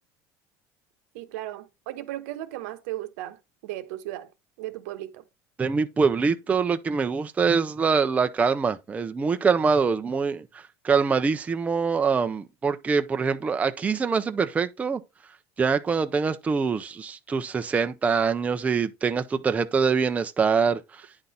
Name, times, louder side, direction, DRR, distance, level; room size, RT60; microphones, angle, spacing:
voice 1, 1.1-4.3 4.6-5.2, right 14 dB, 85° right, 1.0 m, -36 dB
voice 2, 5.6-10.4 10.8-15.0 15.6-20.8, right 5 dB, 15° right, 0.5 m, -24 dB
9.7 x 3.9 x 4.1 m
cardioid pair, 130°, 8 cm